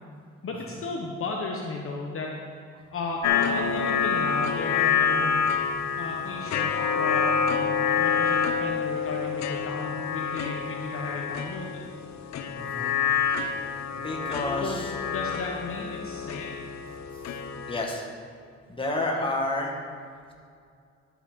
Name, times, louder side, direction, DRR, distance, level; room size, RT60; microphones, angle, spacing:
voice 1, 0.4-2.6 2.9-5.5 6.0-7.6 8.0-11.8 14.6-16.5, left 3 dB, 45° left, 0 dB, 1.1 m, -35 dB
sound 1, 3.2-17.8, left 6 dB, 65° left, 0.8 m, -27 dB
voice 2, 12.5-13.3 13.9-14.9 17.7-18.1 18.7-19.8, left 2 dB, 15° left, -1 dB, 1.9 m, -30 dB
12.0 x 6.0 x 5.2 m, 2.3 s
cardioid pair, 90°, 30 cm